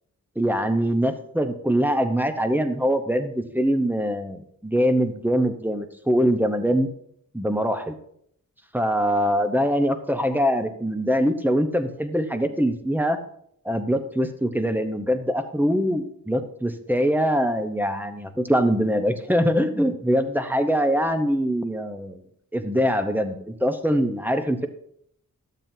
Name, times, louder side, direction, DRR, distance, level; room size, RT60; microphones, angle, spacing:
voice 1, 0.4-6.9 7.3-7.9 8.7-13.2 13.6-22.2 22.5-24.7, equal, 5° right, 7 dB, 0.8 m, -23 dB
12.0 x 7.4 x 2.7 m, 0.69 s
wide cardioid pair, 65°, 35 cm